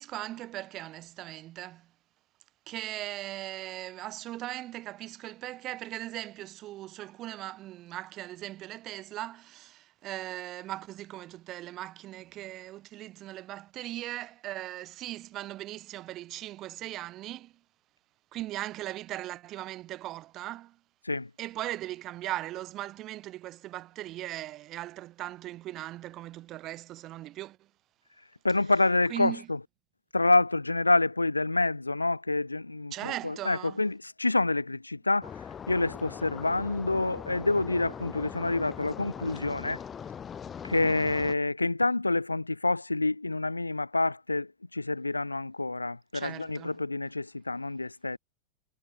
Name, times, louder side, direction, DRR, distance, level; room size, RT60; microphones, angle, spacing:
voice 1, 0.0-1.9 2.7-17.5 18.3-20.7 21.4-27.6 29.1-29.5 32.9-33.8 46.1-46.7, right 15 dB, 35° right, 1.1 m, -39 dB
voice 2, 28.4-29.6 30.1-35.3 35.7-39.8 40.6-48.2, left 2 dB, 80° left, 1.0 m, -27 dB
sound 1, 35.2-41.4, left 7 dB, 20° left, 1.4 m, -41 dB
figure-of-eight pair, 90°, 0 cm